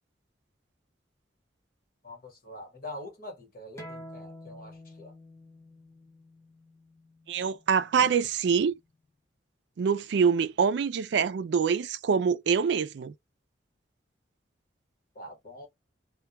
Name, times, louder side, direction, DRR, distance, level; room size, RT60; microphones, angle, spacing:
voice 1, 2.0-5.1 8.0-8.1 15.1-15.7, left 1 dB, 50° left, 1.2 m, -44 dB
sound 1, 3.8-8.9, left 1 dB, 15° left, 0.6 m, -49 dB
voice 2, 7.3-8.7 9.8-13.1, right 6 dB, 70° right, 0.3 m, -25 dB
2.2 x 2.2 x 2.8 m
head